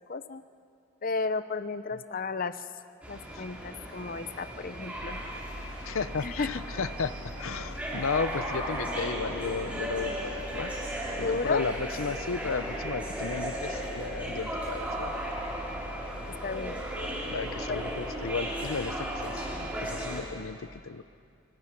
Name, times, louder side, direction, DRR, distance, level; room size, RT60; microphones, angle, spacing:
voice 1, 0.1-0.4 1.0-2.6 3.1-5.2 6.2-6.5 11.2-11.7 16.4-17.1 17.7-17.8, left 4 dB, 45° left, 12 dB, 0.7 m, -33 dB
sound 1, 3.0-20.2, right 1 dB, 5° right, 5.2 m, -36 dB
sound 2, 4.9-20.2, equal, 90° right, 2.3 m, -44 dB
voice 2, 5.9-7.1 7.4-10.7 11.2-15.1 17.3-19.4 19.8-21.0, left 5 dB, 85° left, 14 dB, 0.7 m, -34 dB
26.5 x 24.5 x 6.0 m, 2.3 s
head